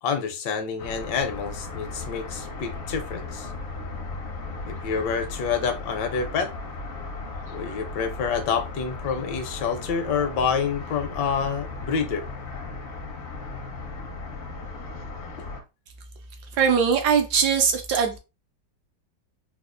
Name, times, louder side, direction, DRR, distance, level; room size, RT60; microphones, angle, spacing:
voice 1, 0.0-3.5 4.7-6.5 7.5-12.3, left 6 dB, 75° left, 1.2 m, -27 dB
sound 1, 0.8-15.6, left 3 dB, 60° left, 0.7 m, -36 dB
voice 2, 16.5-18.2, right 6 dB, 75° right, 1.0 m, -21 dB
4.1 x 2.3 x 2.4 m
omnidirectional pair, 2.0 m